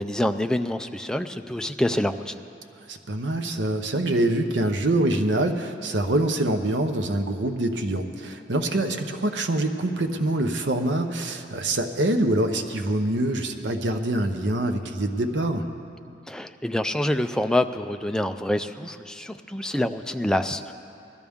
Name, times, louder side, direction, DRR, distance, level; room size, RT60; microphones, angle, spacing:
voice 1, 0.0-2.4 16.3-20.7, left 1 dB, 5° left, 7 dB, 0.3 m, -26 dB
voice 2, 2.9-15.7, right 1 dB, 70° right, 6 dB, 0.8 m, -25 dB
19.5 x 12.5 x 3.6 m, 2.6 s
head